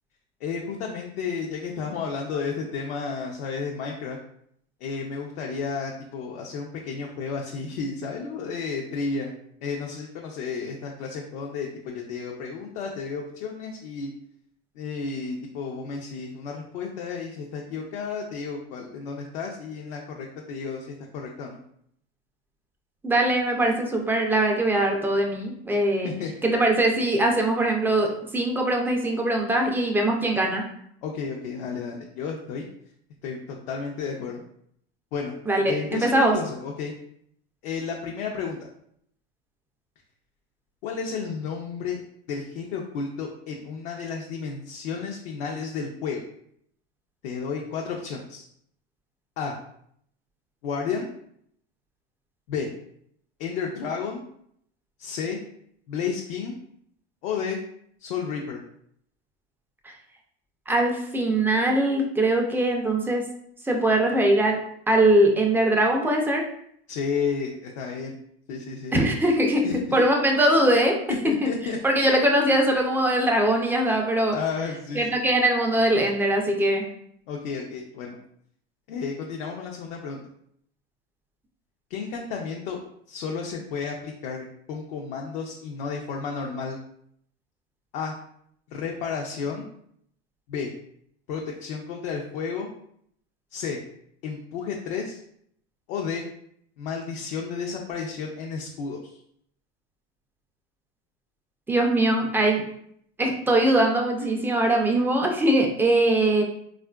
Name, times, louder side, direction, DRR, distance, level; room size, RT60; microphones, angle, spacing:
voice 1, 0.4-4.2 4.8-9.3 9.6-14.1 14.8-21.6 26.0-26.3 31.0-32.7 33.2-34.4 35.1-35.3 35.7-36.9 37.6-38.6 40.8-42.0 42.3-46.2 47.2-48.5 49.4-49.5 50.6-51.1 52.5-52.7 53.4-54.2 55.0-55.4 55.9-56.5 57.2-57.6 58.0-58.6 66.9-68.1 68.5-68.9 69.6-70.1 71.2-72.1 74.3-75.2 77.3-78.2 78.9-80.2 81.9-82.8 83.1-86.8 87.9-88.1 88.7-89.7 90.5-90.7 91.3-92.7 93.5-93.8 94.2-95.2 95.9-96.2 96.8-99.0, left 5 dB, 70° left, -1 dB, 0.6 m, -32 dB
voice 2, 23.0-26.1 26.4-30.6 35.5-36.4 60.7-63.3 63.6-64.6 64.9-66.4 68.9-69.6 69.9-71.0 71.2-71.5 71.8-74.4 74.9-76.9 101.7-102.6 103.2-106.4, right 1 dB, 5° right, 1 dB, 0.3 m, -21 dB
3.6 x 2.4 x 2.3 m, 0.68 s
supercardioid pair, 120°, 32 cm